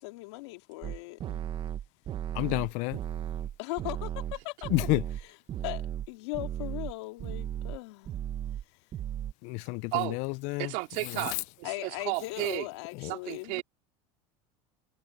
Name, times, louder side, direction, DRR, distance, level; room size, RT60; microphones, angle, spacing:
voice 1, 0.0-1.4 3.6-8.1 11.6-13.6, left 23 dB, 80° left, 3.1 m, -39 dB
sound 1, 0.8-6.1 6.3-6.9 7.2-7.8 8.0-8.6 8.9-9.3, right 10 dB, 35° right, 1.4 m, -35 dB
voice 2, 2.4-3.0 4.7-5.0 9.4-9.9 10.5-10.6, left 24 dB, 60° left, 0.5 m, -28 dB
voice 3, 10.6-12.7 13.1-13.6, right 26 dB, 65° right, 4.3 m, -33 dB
supercardioid pair, 125°, 14 cm